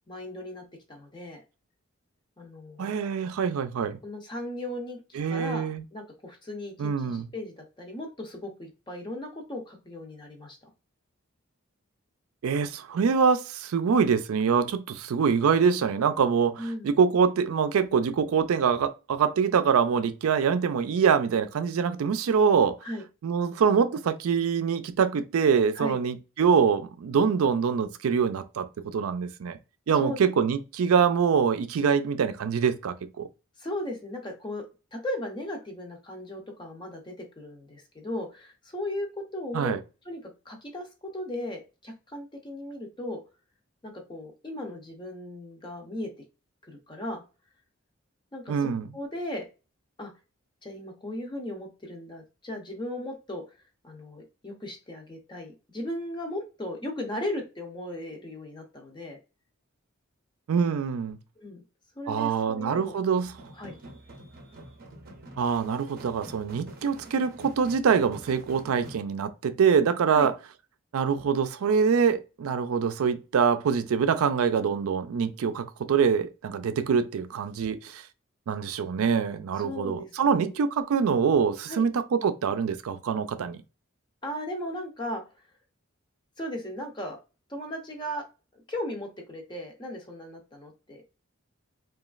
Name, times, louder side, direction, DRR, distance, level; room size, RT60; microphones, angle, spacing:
voice 1, 0.1-1.4 2.4-2.9 4.0-10.7 16.6-16.9 22.8-23.0 25.7-26.0 29.9-30.2 33.6-34.6 34.9-39.8 40.0-43.2 43.8-46.1 46.6-47.2 48.3-49.5 50.0-50.1 50.6-53.4 53.8-59.2 61.4-61.6 62.0-63.2 63.5-63.7 70.1-70.3 79.6-80.5 81.7-81.9 84.2-85.5 86.4-87.2 87.5-88.2 88.5-91.0, left 1 dB, 20° left, 0.5 m, -37 dB
voice 2, 2.8-4.0 5.2-5.8 6.8-7.3 12.4-22.8 23.2-29.6 29.9-33.3 39.5-39.8 48.5-48.9 60.5-61.2 62.1-63.3 65.4-70.3 70.9-78.0 78.5-83.6, right 6 dB, 90° right, 0.4 m, -24 dB
sound 1, 63.2-69.0, right 1 dB, 45° right, 0.6 m, -46 dB
3.0 x 2.3 x 2.3 m
head